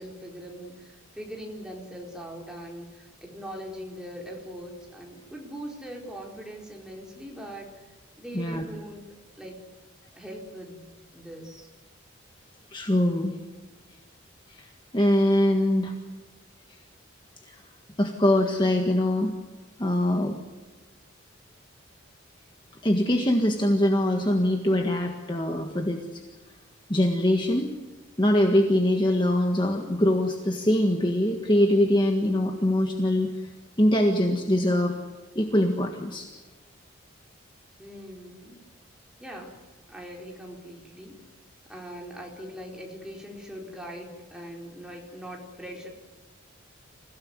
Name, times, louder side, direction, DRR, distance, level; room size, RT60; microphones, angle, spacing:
voice 1, 0.0-7.7 8.2-9.0 9.4-9.6 10.1-10.8 11.1-11.7 37.8-38.6 39.2-39.6 39.9-41.1 41.7-45.9, equal, 5° right, -1 dB, 4.4 m, -41 dB
voice 2, 12.7-13.3 14.5-15.9 17.5-17.6 18.0-19.3 19.8-20.4 22.8-26.2 26.9-27.8 28.2-33.5 33.8-35.0 35.4-36.3, left 1 dB, 20° left, 3 dB, 1.6 m, -23 dB
27.0 x 17.0 x 9.6 m, 1.2 s
head